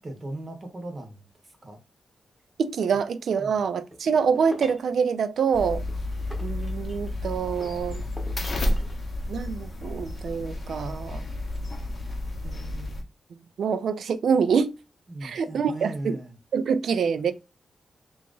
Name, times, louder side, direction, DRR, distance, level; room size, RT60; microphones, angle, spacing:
voice 1, 0.0-1.8 3.4-3.6 7.9-8.2 15.1-16.4 17.0-17.3, right 1 dB, 30° right, 0.8 m, -39 dB
voice 2, 2.6-5.8 6.4-8.0 9.3-11.2 12.4-13.0 13.6-14.7 15.2-16.2 16.5-17.3, right 6 dB, 75° right, 0.4 m, -26 dB
sound 1, 3.9-4.9 5.6-7.2 7.6-9.0, equal, 5° left, 0.7 m, -44 dB
sound 2, 5.5-13.0, left 1 dB, 40° left, 0.7 m, -31 dB
2.8 x 2.4 x 3.8 m
wide cardioid pair, 165°, 0 cm